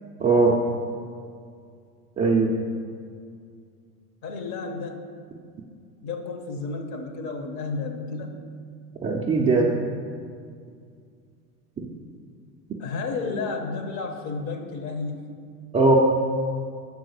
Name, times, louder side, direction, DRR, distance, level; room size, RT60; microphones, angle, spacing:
voice 1, 0.2-0.6 2.2-2.5 9.0-9.7 15.7-16.0, right 3 dB, 15° right, -3 dB, 0.5 m, -19 dB
voice 2, 4.2-5.0 6.0-8.4 12.8-15.4, left 4 dB, 35° left, 5 dB, 0.9 m, -32 dB
6.2 x 4.7 x 6.4 m, 2.2 s
hypercardioid pair, 100°, 49 cm